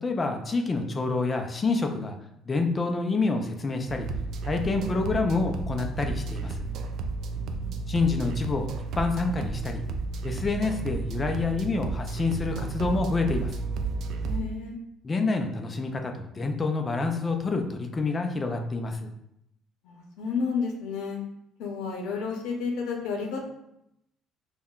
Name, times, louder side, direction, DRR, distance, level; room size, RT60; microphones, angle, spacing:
voice 1, 0.0-2.2 2.5-4.1 4.4-6.7 7.9-8.7 9.0-9.8 10.2-13.5 15.0-19.1, left 3 dB, 20° left, 4 dB, 0.3 m, -27 dB
sound 1, 3.9-14.4, right 3 dB, 55° right, 0.3 m, -32 dB
voice 2, 7.3-7.8 14.2-14.8 19.8-21.2 21.6-23.5, left 5 dB, 85° left, 2 dB, 0.6 m, -31 dB
5.4 x 2.1 x 2.3 m, 0.80 s
cardioid pair, 160°, 0 cm